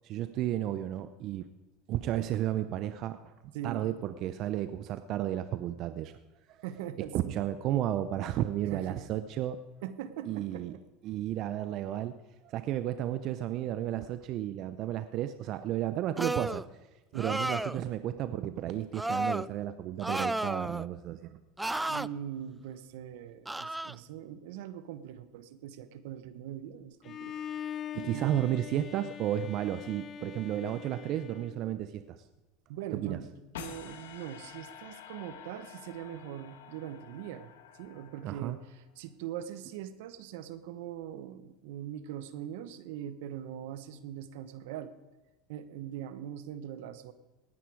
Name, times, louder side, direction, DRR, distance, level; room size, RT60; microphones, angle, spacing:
voice 1, 0.0-1.5 1.9-6.2 6.5-6.6 7.0-9.6 10.2-10.7 11.0-12.2 12.4-16.6 17.2-21.4 21.7-21.9 27.9-32.3 32.9-33.2 38.2-38.6, right 12 dB, 55° right, 11 dB, 0.7 m, -33 dB
voice 2, 3.5-3.9 6.6-7.4 8.7-9.0 9.8-10.8 17.1-17.3 21.9-27.4 28.1-28.4 32.7-44.9 45.5-47.1, right 10 dB, 75° right, 13 dB, 1.0 m, -41 dB
sound 1, 16.2-16.7 17.2-17.8 18.9-19.5 20.0-20.9 21.6-22.1 23.5-23.9, right 2 dB, 5° right, 0.3 m, -32 dB
Bowed string instrument, 27.0-32.1, left 8 dB, 40° left, 0.7 m, -42 dB
sound 2, 33.5-38.8, left 8 dB, 85° left, 1.4 m, -49 dB
18.0 x 10.0 x 4.7 m, 1.1 s
supercardioid pair, 100°, 0 cm